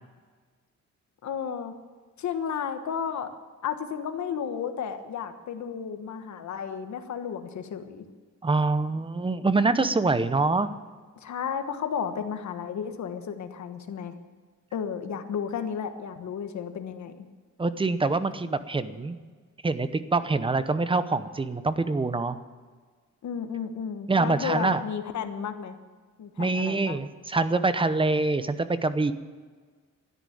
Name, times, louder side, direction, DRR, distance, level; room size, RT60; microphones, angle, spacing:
voice 1, 1.2-1.7 2.2-3.3 3.6-8.0 11.2-14.1 14.7-17.2 23.2-25.7 26.2-27.0, left 7 dB, 65° left, 8 dB, 1.4 m, -33 dB
voice 2, 8.4-10.7 17.6-19.2 19.6-22.4 24.1-24.8 26.4-29.1, right 3 dB, 15° right, 12 dB, 0.7 m, -25 dB
13.0 x 10.5 x 8.5 m, 1.5 s
cardioid pair, 135°, 31 cm